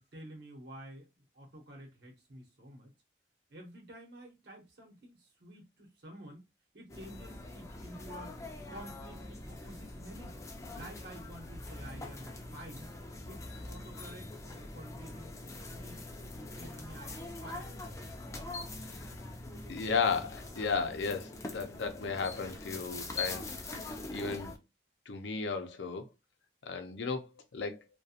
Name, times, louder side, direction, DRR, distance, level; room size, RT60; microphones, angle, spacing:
voice 1, 0.0-2.9 3.5-6.5 6.7-8.4 8.7-10.4 10.7-12.9 13.3-15.4 15.7-16.0 16.3-17.7, right 1 dB, 75° right, 0.8 m, -50 dB
sound 1, 6.9-24.6, left 2 dB, 15° left, 0.3 m, -43 dB
voice 2, 19.7-23.6 24.1-24.5 25.1-26.1 26.6-27.8, left 5 dB, 85° left, 0.5 m, -34 dB
2.4 x 2.2 x 2.7 m
head